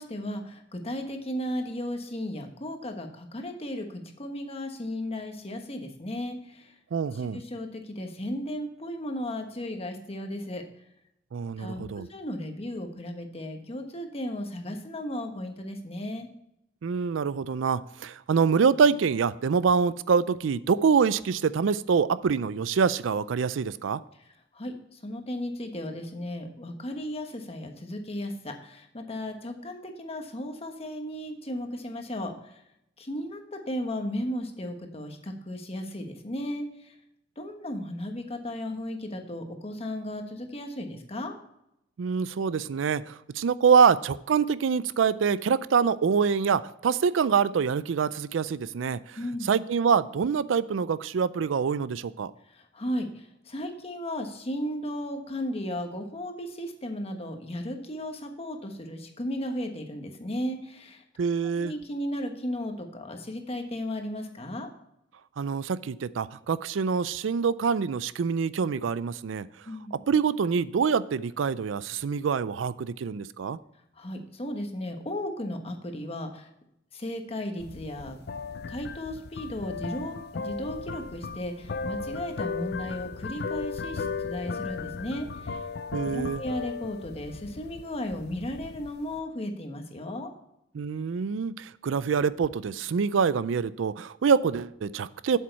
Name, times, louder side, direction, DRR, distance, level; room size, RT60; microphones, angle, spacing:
voice 1, 0.0-6.7 7.1-10.6 11.6-16.3 24.5-32.6 33.0-36.9 37.4-41.4 49.2-49.5 52.5-61.0 61.4-64.7 69.6-69.9 73.9-76.5 76.9-78.2 78.7-85.6 86.1-90.3, left 1 dB, 30° left, 5 dB, 1.3 m, -35 dB
voice 2, 6.9-7.4 11.3-12.1 16.8-24.0 42.0-49.2 49.5-52.3 61.2-61.7 65.4-69.5 70.1-73.6 85.9-86.4 90.7-95.4, right 6 dB, 75° right, 17 dB, 0.4 m, -25 dB
sound 1, 77.6-89.2, left 4 dB, 60° left, 0.5 m, -36 dB
8.1 x 7.6 x 4.5 m, 0.80 s
head